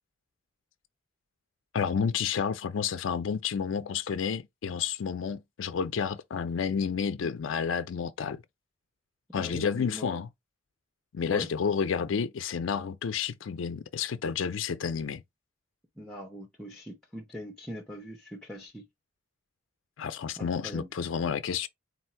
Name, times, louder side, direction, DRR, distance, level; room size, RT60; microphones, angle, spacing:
voice 1, 1.7-8.4 9.3-10.3 11.1-15.2 20.0-21.7, left 6 dB, 75° left, 0.4 m, -30 dB
voice 2, 9.4-10.2 11.3-11.5 16.0-18.8 20.4-20.9, equal, 5° left, 0.8 m, -41 dB
4.0 x 2.6 x 4.3 m
head